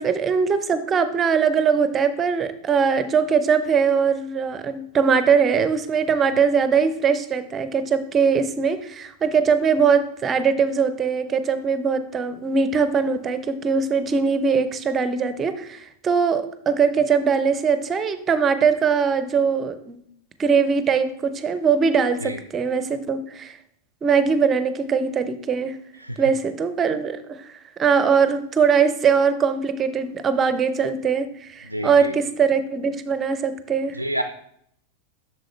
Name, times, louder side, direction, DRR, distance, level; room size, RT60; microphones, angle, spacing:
voice 1, 0.0-20.0 20.4-23.6 24.0-25.8 26.2-27.5 27.8-34.0, right 6 dB, 25° right, 12 dB, 0.6 m, -21 dB
voice 2, 31.7-32.1 34.0-34.2, equal, 90° right, 8 dB, 0.4 m, -28 dB
7.6 x 6.5 x 3.2 m, 0.68 s
figure-of-eight pair, 90°, 0 cm